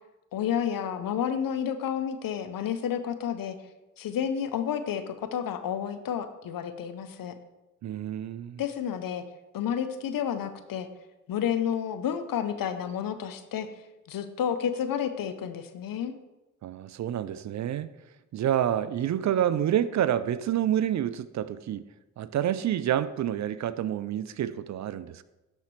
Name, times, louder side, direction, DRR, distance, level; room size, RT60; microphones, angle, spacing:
voice 1, 0.3-3.6 4.0-7.3 8.6-9.2 9.5-10.9 11.3-13.7 14.1-16.1, left 8 dB, 60° left, 0.8 m, -30 dB
voice 2, 7.8-8.6 16.6-17.9 18.3-21.8 22.2-25.2, right 10 dB, 45° right, 0.4 m, -28 dB
11.5 x 4.2 x 3.2 m
hypercardioid pair, 40°, 39 cm